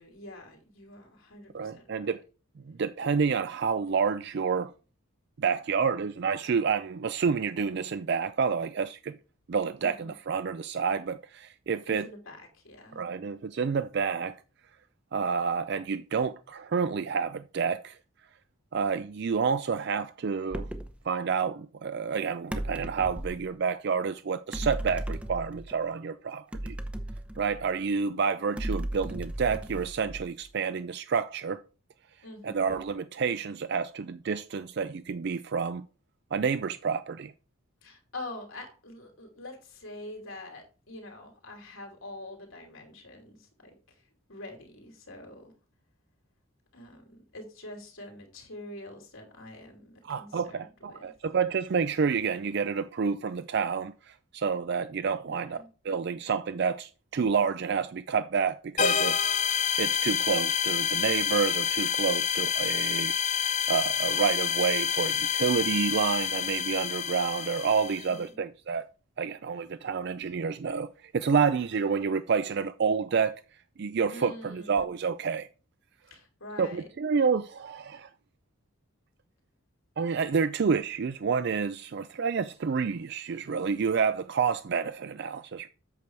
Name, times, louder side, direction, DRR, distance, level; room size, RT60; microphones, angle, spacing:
voice 1, 0.0-2.2 9.8-10.1 11.9-13.0 32.2-32.8 37.8-45.5 46.7-51.1 55.3-55.7 68.0-68.4 74.1-74.8 76.1-76.9, left 1 dB, 70° left, 2.9 m, -45 dB
voice 2, 1.5-2.2 2.7-4.7 5.4-9.2 9.5-12.1 13.0-14.4 15.1-18.0 18.7-20.7 21.1-26.8 27.4-31.6 32.4-35.8 36.3-37.3 50.1-55.6 55.8-59.2 59.8-68.9 69.2-70.9 71.1-73.4 73.8-75.5 76.6-78.1 80.0-85.7, right 5 dB, 50° right, 0.4 m, -29 dB
sound 1, 20.5-21.0 22.5-23.5 24.5-25.8 26.5-27.9 28.6-30.5, right 1 dB, 5° right, 0.7 m, -36 dB
sound 2, 58.8-68.2, left 8 dB, 35° left, 0.5 m, -28 dB
8.3 x 6.8 x 4.6 m
head